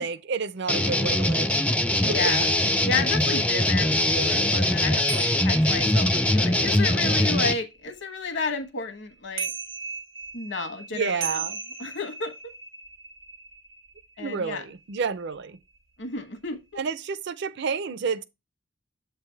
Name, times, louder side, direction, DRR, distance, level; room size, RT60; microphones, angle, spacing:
voice 1, 0.0-1.5 2.1-2.2 10.9-11.5 14.2-15.6 16.8-18.2, right 5 dB, 60° right, 0.5 m, -30 dB
sound 1, 0.7-7.5, left 1 dB, 5° left, 0.3 m, -22 dB
voice 2, 2.0-2.5 2.8-9.5 10.3-11.5 11.8-12.3 14.2-14.6 16.0-16.6, left 4 dB, 60° left, 1.2 m, -31 dB
sound 2, 5.1-8.6 9.1-15.1 15.4-15.8, right 5 dB, 80° right, 1.0 m, -38 dB
7.8 x 3.4 x 4.5 m
head